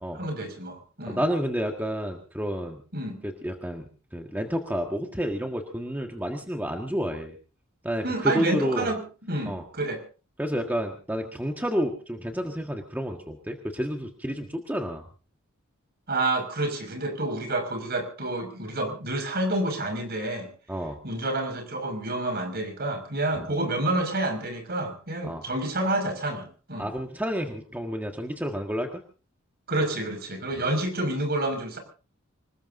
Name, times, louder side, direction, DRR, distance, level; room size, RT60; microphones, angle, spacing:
voice 1, 0.1-1.2 2.9-3.2 8.0-10.0 16.1-20.5 21.0-26.9 29.7-31.8, right 2 dB, 50° right, 5 dB, 5.8 m, -29 dB
voice 2, 1.0-2.8 3.2-3.8 4.1-7.4 7.8-8.9 9.4-9.6 10.4-15.0 20.7-21.0 23.3-23.4 25.2-25.4 26.8-29.0, equal, 10° right, 3 dB, 1.6 m, -30 dB
25.5 x 20.0 x 2.7 m, 0.36 s
head